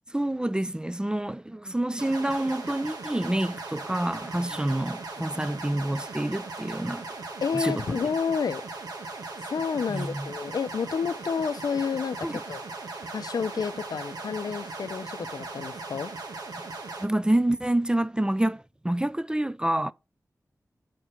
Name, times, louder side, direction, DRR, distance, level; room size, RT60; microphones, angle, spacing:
voice 1, 0.1-7.1 7.5-8.0 9.9-10.3 12.2-12.4 17.0-19.9, right 1 dB, 15° right, 0.4 m, -27 dB
sound 1, 2.0-17.0, right 3 dB, 90° right, 1.6 m, -38 dB
voice 2, 7.4-8.6 9.4-12.6 13.1-16.1, left 6 dB, 80° left, 0.5 m, -30 dB
6.0 x 4.4 x 4.8 m
cardioid pair, 40°, 6 cm